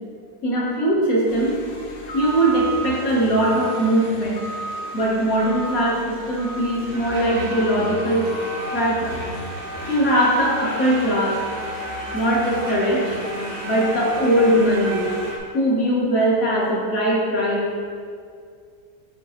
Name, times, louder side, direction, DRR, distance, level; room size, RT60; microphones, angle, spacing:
voice 1, 0.4-1.5 2.1-4.4 4.9-8.3 8.7-9.2 9.9-11.4 12.1-13.2 13.6-15.1 15.5-17.7, right 1 dB, 55° left, -5 dB, 1.6 m, -20 dB
sound 1, 1.3-15.3, right 1 dB, 75° left, 0.5 m, -35 dB
sound 2, 6.9-15.4, right 1 dB, 70° right, 1.5 m, -33 dB
8.5 x 3.7 x 3.1 m, 2.2 s
omnidirectional pair, 1.9 m